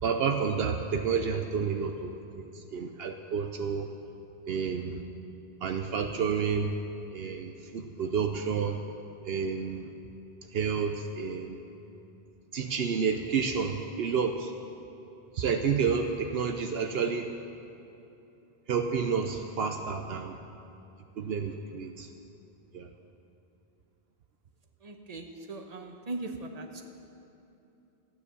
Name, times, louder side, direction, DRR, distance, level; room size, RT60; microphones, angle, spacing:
voice 1, 0.0-3.9 4.5-5.0 5.6-6.7 7.1-8.8 9.2-9.9 10.5-11.6 12.5-14.5 15.3-17.3 18.7-20.4 21.2-22.1 22.7-22.9, right 6 dB, 75° right, 5 dB, 0.9 m, -30 dB
voice 2, 24.8-26.8, right 2 dB, 40° right, 4 dB, 1.1 m, -39 dB
14.0 x 9.6 x 6.9 m, 2.9 s
omnidirectional pair, 1.1 m